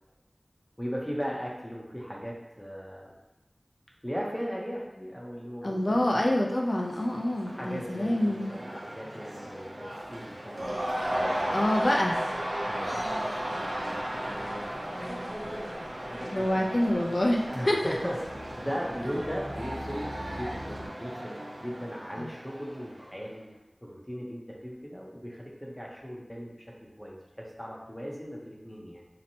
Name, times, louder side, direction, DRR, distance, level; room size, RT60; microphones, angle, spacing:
voice 1, 0.8-3.1 4.0-6.0 7.5-12.0 12.7-16.6 17.5-23.5 23.8-26.5 27.0-29.0, equal, 10° left, -3 dB, 0.6 m, -38 dB
voice 2, 5.6-8.5 11.5-12.2 16.3-17.8 22.2-22.3, left 1 dB, 55° left, 0 dB, 0.4 m, -26 dB
Cheering / Crowd, 6.3-23.2, equal, 80° right, 0.5 m, -36 dB
sound 1, 10.6-20.9, equal, 40° right, 0.7 m, -44 dB
2.9 x 2.1 x 2.6 m, 1.0 s
wide cardioid pair, 55°, 0 cm